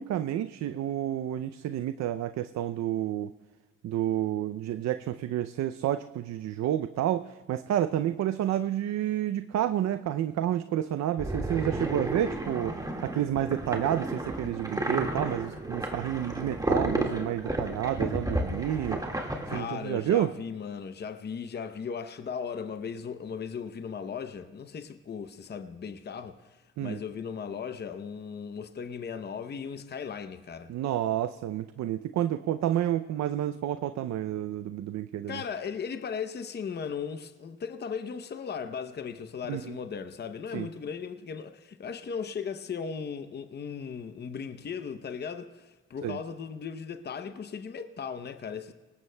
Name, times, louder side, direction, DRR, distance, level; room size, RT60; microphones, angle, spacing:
voice 1, 0.0-3.3 3.8-19.0 19.5-20.3 26.8-27.0 30.7-35.4 39.5-39.8 40.5-40.7 46.0-46.2, right 11 dB, 65° right, 0.5 m, -30 dB
sound 1, 11.2-19.6, right 1 dB, 10° right, 1.8 m, -32 dB
voice 2, 19.5-30.7 35.3-48.7, left 6 dB, 35° left, 0.7 m, -37 dB
24.0 x 19.0 x 2.2 m
cardioid pair, 90°, 30 cm